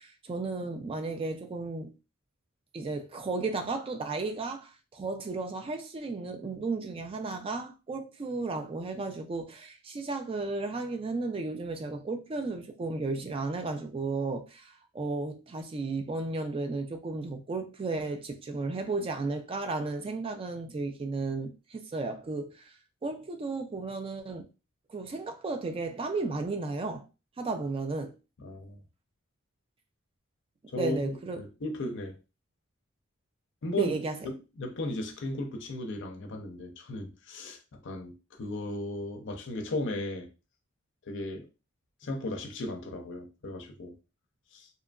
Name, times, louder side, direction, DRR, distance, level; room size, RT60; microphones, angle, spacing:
voice 1, 0.0-1.9 2.7-22.7 23.0-24.5 24.9-27.1 27.4-28.1 30.8-31.4 33.8-34.2, right 3 dB, 25° right, 0.3 m, -34 dB
voice 2, 28.4-28.8 30.7-32.2 33.6-33.9 34.2-40.3 41.1-41.5 42.0-43.9 44.5-44.7, left 2 dB, 60° left, 0.5 m, -36 dB
2.8 x 2.4 x 2.2 m
head